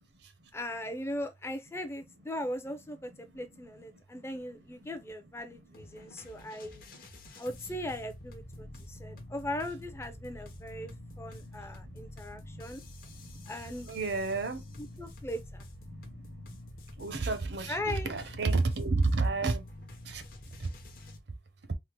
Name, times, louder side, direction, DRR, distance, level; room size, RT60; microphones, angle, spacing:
voice 1, 0.5-6.8 7.4-10.9 11.2-12.8 13.5-13.9 14.8-15.6 17.7-18.1, left 1 dB, 15° left, 0.4 m, -39 dB
sound 1, 5.7-21.2, left 1 dB, 50° left, 0.7 m, -47 dB
voice 2, 5.9-6.8 8.6-9.2 11.0-12.0 12.3-15.0 15.9-16.6 17.0-19.7 20.0-20.2 20.6-20.7 21.7-21.8, right 3 dB, 60° right, 0.6 m, -34 dB
3.6 x 2.1 x 2.9 m
head